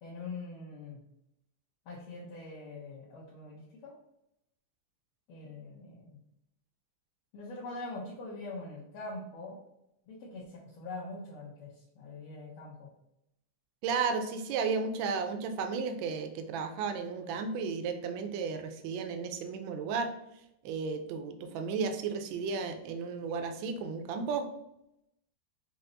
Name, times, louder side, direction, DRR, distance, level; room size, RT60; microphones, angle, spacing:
voice 1, 0.0-1.0 1.9-3.9 5.3-6.2 7.3-9.6 10.1-12.9, left 2 dB, 75° left, -6 dB, 1.7 m, -43 dB
voice 2, 13.8-20.1 20.6-24.5, right 5 dB, 75° right, 6 dB, 1.3 m, -33 dB
5.7 x 2.0 x 3.8 m, 0.84 s
omnidirectional pair, 2.3 m